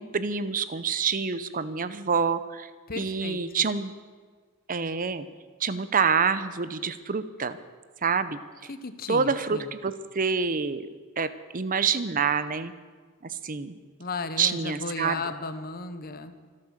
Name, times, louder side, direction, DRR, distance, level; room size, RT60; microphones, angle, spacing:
voice 1, 0.0-2.7 3.0-3.9 4.7-5.3 5.6-7.6 8.0-8.4 9.1-10.8 11.2-11.3 11.5-12.7 13.2-13.7 14.4-15.2, right 5 dB, 40° right, 13 dB, 0.8 m, -27 dB
voice 2, 2.9-3.7 8.7-9.7 14.0-16.4, left 3 dB, 45° left, 10 dB, 1.0 m, -35 dB
25.0 x 8.5 x 6.6 m, 1.5 s
head